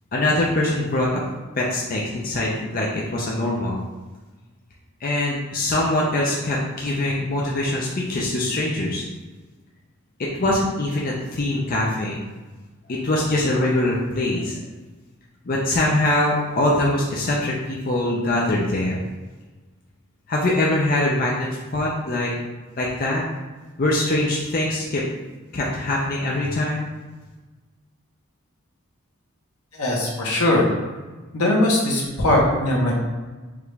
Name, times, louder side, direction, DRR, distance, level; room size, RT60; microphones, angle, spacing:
voice 1, 0.1-1.2 1.6-3.8 5.0-9.0 10.2-12.2 12.9-14.6 15.5-19.0 20.3-22.3 22.8-23.2 23.8-25.0 25.5-26.9, left 1 dB, 40° left, -4 dB, 0.5 m, -23 dB
voice 2, 29.7-30.7 31.3-32.9, left 1 dB, 80° left, -3 dB, 1.1 m, -20 dB
4.8 x 2.5 x 3.3 m, 1.2 s
head